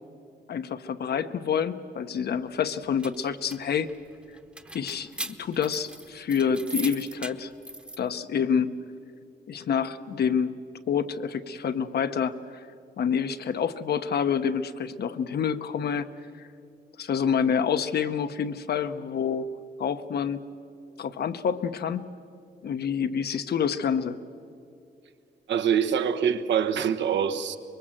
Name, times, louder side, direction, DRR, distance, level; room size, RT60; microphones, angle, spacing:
voice 1, 0.5-3.9 4.7-7.5 8.0-8.8 9.5-10.6 10.9-12.4 13.0-16.0 17.0-19.5 19.8-20.4 21.0-22.1 22.6-24.2, left 7 dB, 65° left, 10 dB, 1.0 m, -27 dB
sound 1, 2.7-8.0, right 1 dB, 5° right, 0.9 m, -40 dB
voice 2, 25.5-27.6, right 8 dB, 90° right, 7 dB, 1.3 m, -24 dB
25.0 x 22.0 x 7.6 m, 2.6 s
wide cardioid pair, 150°, 18 cm